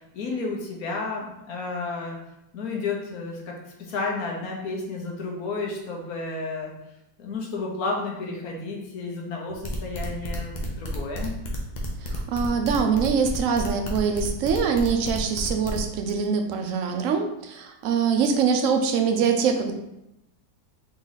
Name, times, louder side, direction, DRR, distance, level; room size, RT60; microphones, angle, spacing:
voice 1, 0.0-2.2 2.5-6.7 7.2-11.3, left 3 dB, 65° left, 0 dB, 1.3 m, -32 dB
sound 1, 9.5-15.8, left 2 dB, 45° left, 0.6 m, -33 dB
voice 2, 12.0-19.7, right 6 dB, 65° right, 5 dB, 0.8 m, -24 dB
4.0 x 3.1 x 4.0 m, 0.88 s
omnidirectional pair, 1.7 m